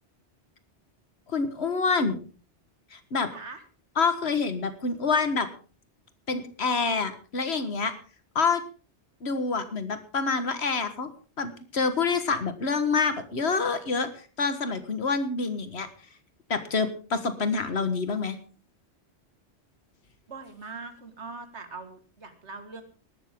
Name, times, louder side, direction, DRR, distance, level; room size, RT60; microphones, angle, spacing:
voice 1, 1.3-2.2 2.9-3.3 4.0-5.5 6.3-7.9 8.4-8.6 9.2-11.1 11.4-14.1 14.4-15.9 16.5-18.4, left 4 dB, 70° left, 10 dB, 1.7 m, -27 dB
voice 2, 3.3-3.6 20.3-22.8, right 4 dB, 85° right, 8 dB, 2.1 m, -41 dB
18.5 x 12.5 x 3.7 m, 0.38 s
omnidirectional pair, 1.2 m